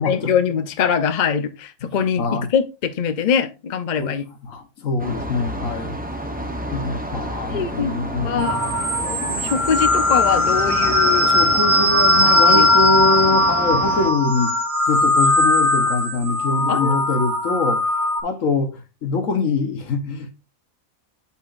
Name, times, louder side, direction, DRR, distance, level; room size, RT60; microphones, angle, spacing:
voice 1, 0.0-4.2 7.5-7.9 8.2-8.6 9.0-11.3 12.3-12.7 16.7-17.0, left 7 dB, 45° left, 0.6 m, -23 dB
voice 2, 4.5-5.9 6.7-8.4 11.3-14.6 14.9-17.8 18.2-20.3, left 3 dB, 70° left, 1.5 m, -24 dB
sound 1, 5.0-14.1, right 1 dB, 10° right, 0.5 m, -30 dB
sound 2, 8.4-18.2, left 2 dB, 50° right, 1.5 m, -19 dB
8.2 x 5.6 x 2.5 m
omnidirectional pair, 1.5 m